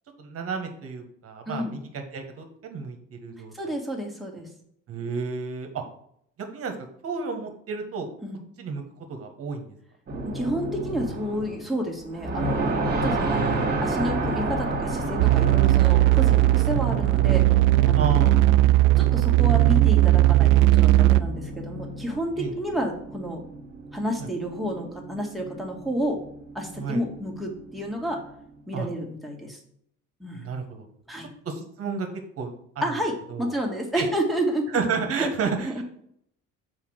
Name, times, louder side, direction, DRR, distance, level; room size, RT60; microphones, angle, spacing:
voice 1, 0.2-3.7 4.9-5.8 6.5-6.7 7.0-8.1 8.6-8.8 9.1-9.7 13.2-13.9 17.9-18.7 22.4-22.5 26.8-27.0 28.7-28.9 30.3-30.8 31.4-32.1 32.4-32.5 32.7-32.8 33.3-33.5 34.0-34.1 34.7-35.8, right 5 dB, 50° right, 5 dB, 1.5 m, -31 dB
voice 2, 3.5-4.5 8.2-8.4 10.3-13.4 13.8-17.4 17.9-18.3 19.0-23.4 23.9-26.2 26.5-28.2 28.7-29.6 30.2-30.5 31.1-31.3 32.8-34.8 35.2-35.3 35.6-35.8, equal, ahead, 0 dB, 2.0 m, -30 dB
sound 1, 10.1-11.7 12.0-28.4, right 2 dB, 30° right, 2.1 m, -31 dB
sound 2, 15.2-21.2, right 17 dB, 80° right, 0.5 m, -18 dB
5.7 x 4.8 x 6.5 m, 0.70 s
supercardioid pair, 100°, 31 cm